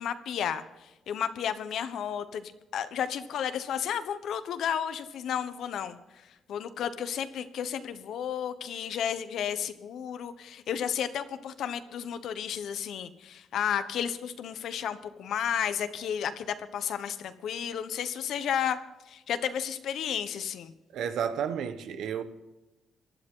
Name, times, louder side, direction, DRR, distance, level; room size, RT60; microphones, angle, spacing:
voice 1, 0.0-6.0 6.5-18.8 19.1-20.7, left 9 dB, 75° left, 1.2 m, -32 dB
voice 2, 20.9-22.2, right 8 dB, 75° right, 1.3 m, -31 dB
19.0 x 11.5 x 3.9 m
cardioid pair, 90°, 0 cm